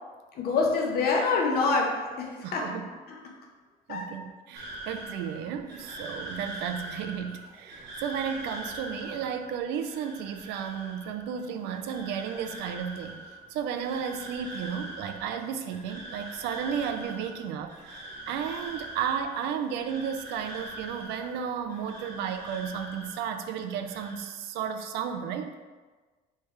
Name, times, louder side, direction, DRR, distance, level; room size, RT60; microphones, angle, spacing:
voice 1, 0.3-2.8 3.1-3.2 3.9-4.1, left 4 dB, 65° left, 0 dB, 0.9 m, -26 dB
voice 2, 2.4-2.9 3.9-13.2 13.5-25.5, right 7 dB, 85° right, 7 dB, 0.4 m, -33 dB
sound 1, 4.5-23.4 23.7-24.2, right 1 dB, 70° right, 1.3 m, -43 dB
3.3 x 3.3 x 4.7 m, 1.3 s
cardioid pair, 110°, 17 cm